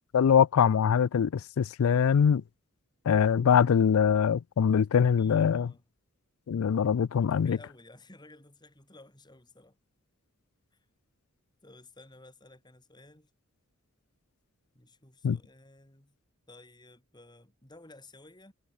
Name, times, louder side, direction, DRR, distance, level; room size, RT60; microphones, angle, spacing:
voice 1, 0.1-2.4 3.1-5.7 6.5-7.6 15.2-15.4, left 7 dB, 80° left, 0.4 m, -23 dB
voice 2, 5.2-5.8 7.2-9.8 10.7-10.8 11.6-13.3 14.7-16.2 16.5-18.5, left 2 dB, 20° left, 4.0 m, -54 dB
head